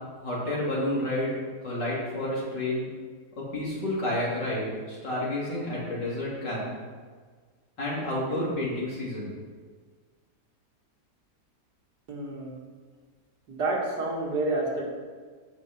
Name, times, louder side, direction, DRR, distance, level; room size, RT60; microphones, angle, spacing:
voice 1, 0.2-1.4 1.6-2.9 3.4-6.7 7.8-9.4, left 1 dB, 90° left, -6 dB, 3.6 m, -30 dB
voice 2, 12.1-12.6 13.5-14.9, right 2 dB, 70° right, -2 dB, 2.4 m, -29 dB
14.0 x 6.2 x 4.4 m, 1.6 s
omnidirectional pair, 1.8 m